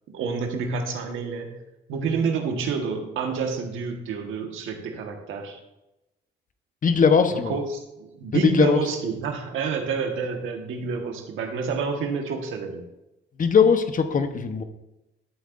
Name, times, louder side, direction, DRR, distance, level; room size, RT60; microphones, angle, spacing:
voice 1, 0.1-1.6 1.9-5.6 7.4-12.8, right 5 dB, 85° right, 4 dB, 1.5 m, -28 dB
voice 2, 6.8-7.5 8.3-8.8 13.4-14.6, left 6 dB, 40° left, 8 dB, 1.0 m, -20 dB
12.0 x 8.1 x 2.6 m, 0.94 s
cardioid pair, 90°, 20 cm